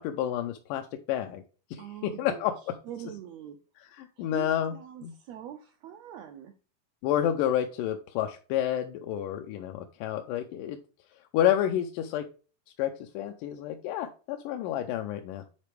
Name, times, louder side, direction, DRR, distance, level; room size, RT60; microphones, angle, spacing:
voice 1, 0.0-1.4 1.7-2.5 4.0-4.7 5.0-5.1 7.0-10.8 11.3-12.3 12.8-15.5, left 11 dB, 85° left, 5 dB, 2.2 m, -29 dB
voice 2, 1.8-2.4 2.8-3.6 3.9-6.5, right 10 dB, 85° right, 7 dB, 1.5 m, -43 dB
9.8 x 4.1 x 3.3 m, 0.36 s
omnidirectional pair, 3.6 m